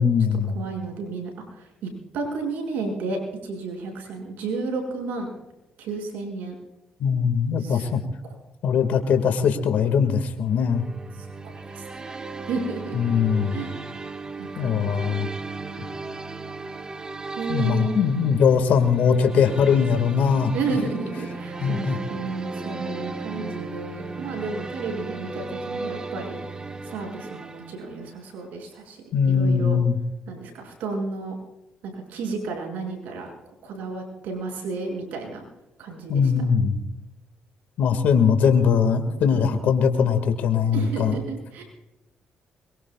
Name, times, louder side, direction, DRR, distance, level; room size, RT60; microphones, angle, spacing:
voice 1, 0.0-0.6 7.0-8.0 8.6-10.8 12.9-13.6 14.6-15.3 17.5-20.5 21.6-22.0 29.1-30.0 36.1-36.8 37.8-41.2, left 6 dB, 75° left, 7 dB, 2.1 m, -21 dB
voice 2, 0.5-5.3 5.8-6.6 7.6-7.9 11.2-11.3 11.7-12.1 12.5-13.0 13.5-13.8 14.4-15.2 17.3-18.3 20.5-26.4 26.9-29.8 30.3-31.3 31.8-33.3 33.6-35.4 35.8-36.3 39.3-39.5 40.7-41.6, right 4 dB, 80° right, 2 dB, 6.7 m, -32 dB
sound 1, 10.5-28.2, right 3 dB, 30° right, 1.7 m, -36 dB
24.0 x 23.0 x 2.4 m, 0.96 s
cardioid pair, 75°, 3 cm